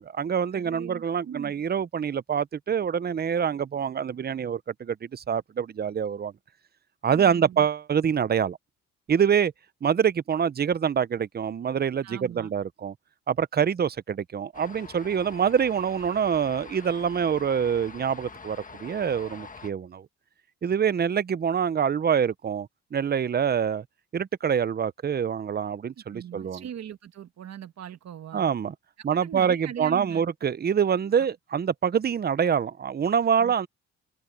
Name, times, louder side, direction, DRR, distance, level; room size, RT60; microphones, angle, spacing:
voice 1, 0.0-6.3 7.0-8.6 9.1-9.5 9.8-12.9 13.3-20.1 20.6-23.8 24.1-26.6 28.3-28.7 29.0-33.7, right 7 dB, 30° right, 0.7 m, -25 dB
voice 2, 0.5-1.5 7.1-7.7 12.0-12.5 26.0-28.5 29.1-30.2 31.1-31.2 33.4-33.5, right 9 dB, 60° right, 1.5 m, -40 dB
sound 1, 14.5-19.7, left 4 dB, 25° left, 1.5 m, -45 dB
cardioid pair, 90°, 30 cm